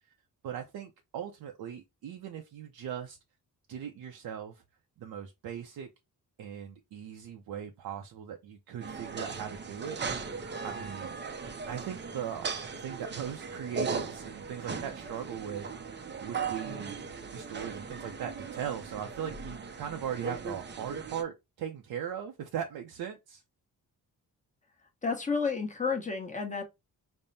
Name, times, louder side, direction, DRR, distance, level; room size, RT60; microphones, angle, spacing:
voice 1, 0.4-3.2 3.7-4.6 5.0-5.9 6.4-10.4 10.6-11.2 11.7-15.7 15.9-17.0 17.3-23.4, right 9 dB, 85° right, 0.6 m, -39 dB
sound 1, 8.8-21.2, right 5 dB, 30° right, 0.5 m, -38 dB
voice 2, 25.0-26.6, left 5 dB, 20° left, 0.9 m, -31 dB
5.3 x 2.1 x 2.6 m
wide cardioid pair, 125°, 36 cm